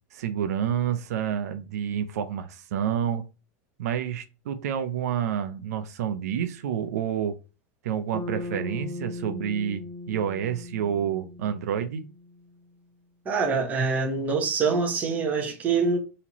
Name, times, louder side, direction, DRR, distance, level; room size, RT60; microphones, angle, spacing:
voice 1, 0.1-3.2 3.8-7.3 7.8-9.8 10.1-12.0, right 9 dB, 90° right, 0.6 m, -29 dB
Bass guitar, 8.1-12.5, left 2 dB, 15° left, 0.4 m, -38 dB
voice 2, 13.2-16.0, right 4 dB, 20° right, 1.0 m, -25 dB
4.2 x 2.9 x 2.9 m
supercardioid pair, 155°, 8 cm